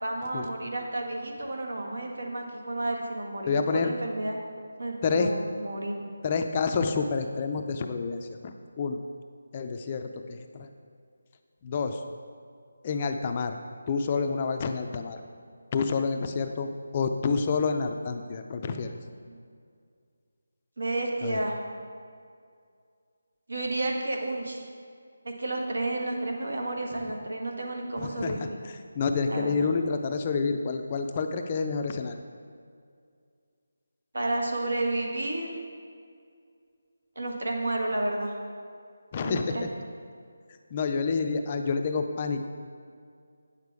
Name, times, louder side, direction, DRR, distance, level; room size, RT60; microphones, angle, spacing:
voice 1, 0.0-4.4 4.8-6.1 19.3-19.4 20.8-21.6 23.5-24.6 25.2-28.6 29.3-29.7 34.1-35.6 37.1-38.4 39.2-39.7, right 2 dB, 75° right, 1 dB, 1.6 m, -31 dB
voice 2, 3.5-3.9 5.0-5.3 6.2-9.0 9.5-10.7 11.6-12.0 12.8-13.6 13.9-15.2 15.7-18.9 21.2-21.4 28.0-32.2 39.1-39.7 40.7-42.5, left 4 dB, 25° left, 6 dB, 0.4 m, -28 dB
8.7 x 6.7 x 4.8 m, 2.2 s
figure-of-eight pair, 170°, 0 cm